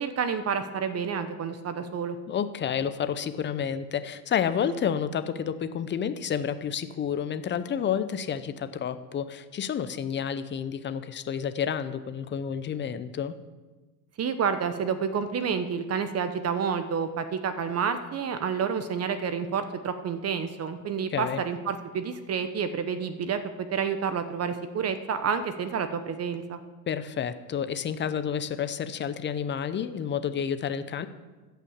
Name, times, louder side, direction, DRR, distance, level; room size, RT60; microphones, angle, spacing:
voice 1, 0.0-2.2 14.2-26.6, right 6 dB, 30° right, 10 dB, 0.9 m, -29 dB
voice 2, 2.3-13.3 21.1-21.4 26.9-31.1, left 8 dB, 25° left, 12 dB, 0.7 m, -30 dB
14.5 x 5.8 x 7.3 m, 1.3 s
supercardioid pair, 110°, 49 cm